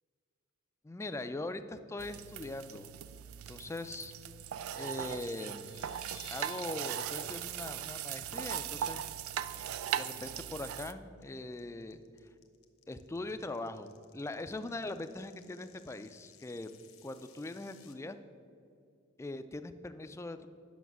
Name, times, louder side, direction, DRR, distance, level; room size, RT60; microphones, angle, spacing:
voice 1, 0.8-2.9 3.3-4.1 4.7-5.8 6.3-9.0 9.5-12.0 12.9-16.8 17.0-18.2 19.2-20.5, left 2 dB, 15° left, 10 dB, 0.3 m, -41 dB
sound 1, 2.0-10.9, right 10 dB, 85° right, 0.4 m, -39 dB
sound 2, 5.1-6.8 7.1-7.3 7.7-7.8 8.2-8.4 8.8-9.2 9.6-17.9, left 9 dB, 80° left, 1.0 m, -59 dB
9.3 x 6.0 x 6.1 m, 2.4 s
head